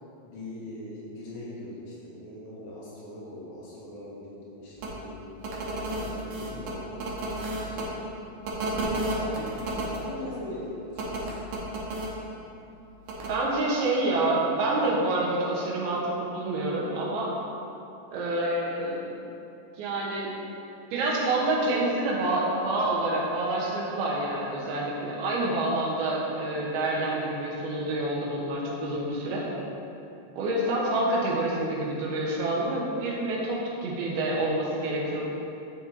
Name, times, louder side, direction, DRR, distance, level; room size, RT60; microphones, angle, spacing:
voice 1, 0.2-8.1 8.7-12.0, left 1 dB, 75° left, -7 dB, 3.5 m, -41 dB
sound 1, 4.8-4.9 5.4-7.8 8.4-10.0 11.0-12.1 13.1-13.3, right 2 dB, 70° right, 2.6 m, -31 dB
voice 2, 13.3-17.3 18.1-19.1 19.8-20.3 20.9-29.5 30.4-35.2, right 2 dB, 85° right, -4 dB, 3.1 m, -27 dB
11.5 x 5.6 x 2.8 m, 2.8 s
omnidirectional pair, 4.3 m